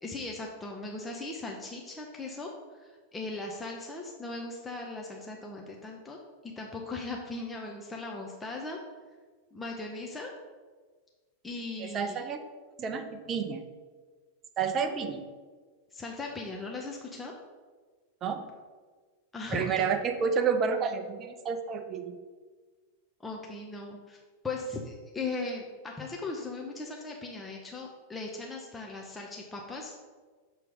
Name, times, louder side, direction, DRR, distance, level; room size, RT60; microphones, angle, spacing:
voice 1, 0.0-8.8 9.5-10.3 11.4-12.2 15.9-17.3 19.3-19.9 23.2-30.1, left 3 dB, 10° left, -1 dB, 0.6 m, -38 dB
voice 2, 11.8-12.4 12.8-13.6 14.6-15.2 18.2-18.4 19.5-22.2, right 6 dB, 30° right, 7 dB, 0.6 m, -30 dB
6.7 x 3.1 x 5.1 m, 1.4 s
figure-of-eight pair, 90°, 0 cm